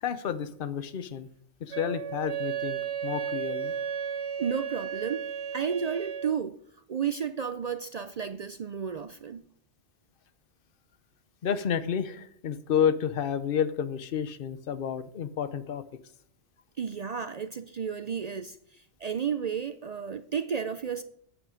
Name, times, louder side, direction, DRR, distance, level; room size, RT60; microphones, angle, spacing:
voice 1, 0.0-1.3 1.6-3.7 11.4-15.8, left 8 dB, 55° left, 0.9 m, -30 dB
Wind instrument woodwind instrument, 1.7-6.4, right 8 dB, 80° right, 1.2 m, -34 dB
voice 2, 4.4-5.3 5.5-6.6 6.9-9.5 16.8-21.0, right 7 dB, 55° right, 0.4 m, -32 dB
9.2 x 8.8 x 5.0 m
omnidirectional pair, 1.2 m